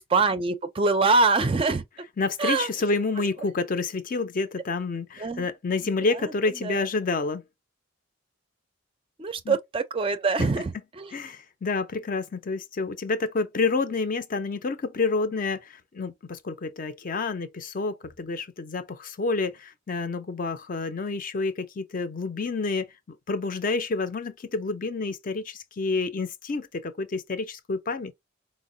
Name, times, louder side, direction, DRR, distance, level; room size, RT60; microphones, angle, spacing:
voice 1, 0.0-1.8 2.4-2.7 5.2-5.4 6.2-6.3 6.6-6.9 9.2-11.1, right 3 dB, 25° right, 0.4 m, -24 dB
voice 2, 2.2-7.4 9.4-9.6 11.1-28.1, left 3 dB, 45° left, 0.5 m, -29 dB
4.4 x 2.0 x 2.6 m
head